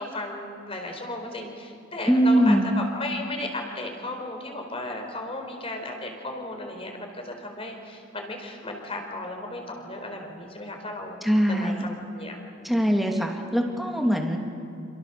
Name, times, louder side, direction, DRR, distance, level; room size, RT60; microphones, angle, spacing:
voice 1, 0.0-11.2 11.5-13.1, left 2 dB, 30° left, 3 dB, 4.3 m, -35 dB
voice 2, 2.0-2.7 11.2-11.9 12.6-14.4, equal, ahead, 1 dB, 2.7 m, -22 dB
28.5 x 27.5 x 7.0 m, 2.5 s
head